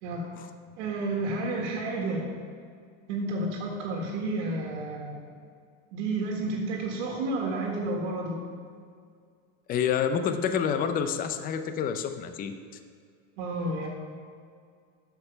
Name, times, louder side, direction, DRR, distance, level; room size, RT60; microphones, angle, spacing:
voice 1, 0.8-2.2 3.1-5.2 5.9-8.4 13.4-13.9, right 2 dB, 70° right, -1 dB, 1.7 m, -31 dB
voice 2, 9.7-12.6, left 7 dB, 25° left, 9 dB, 0.5 m, -28 dB
8.4 x 6.9 x 5.7 m, 2.1 s
supercardioid pair, 140°, 36 cm